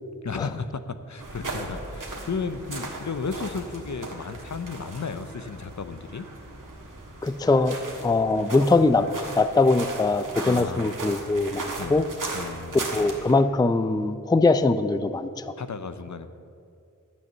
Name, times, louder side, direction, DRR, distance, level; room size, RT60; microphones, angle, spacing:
voice 1, 0.2-6.3 10.4-10.9 11.8-12.0 12.3-12.9 15.6-16.3, left 5 dB, 60° left, 10 dB, 0.7 m, -34 dB
sound 1, 1.2-13.3, right 2 dB, 70° right, 1.7 m, -37 dB
voice 2, 7.2-9.1 9.3-12.0 12.7-15.5, left 3 dB, 10° left, 12 dB, 0.4 m, -22 dB
10.5 x 8.5 x 6.6 m, 2.5 s
wide cardioid pair, 45°, 33 cm